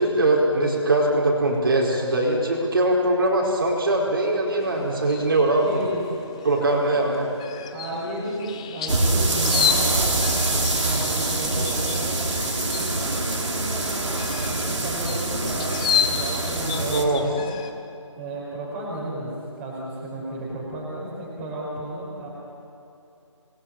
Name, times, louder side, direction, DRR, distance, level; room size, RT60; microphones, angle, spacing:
voice 1, 0.0-5.8 6.4-7.3 16.9-17.2, right 2 dB, 45° right, -2 dB, 4.6 m, -21 dB
sound 1, 4.6-17.7, left 8 dB, 10° left, 0.7 m, -32 dB
voice 2, 5.6-6.0 7.7-17.4 18.1-19.3 19.6-22.3, right 1 dB, 10° right, -5 dB, 5.3 m, -33 dB
sound 2, 8.9-17.0, right 2 dB, 70° right, 4.4 m, -25 dB
27.5 x 21.0 x 9.0 m, 2.6 s
figure-of-eight pair, 165°, 16 cm